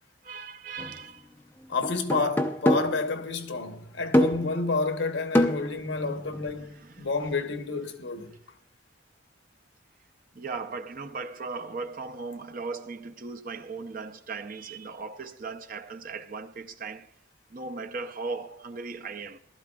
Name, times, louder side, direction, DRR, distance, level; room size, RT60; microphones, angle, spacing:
voice 1, 0.2-1.3 6.8-7.1 10.3-17.1 17.5-19.4, right 4 dB, 45° right, 0.6 m, -37 dB
sound 1, 0.8-0.9 1.8-3.1 4.1-4.5 5.3-6.6, equal, 10° left, 0.6 m, -25 dB
voice 2, 1.7-8.4, left 3 dB, 75° left, 1.0 m, -30 dB
15.0 x 12.5 x 2.3 m
head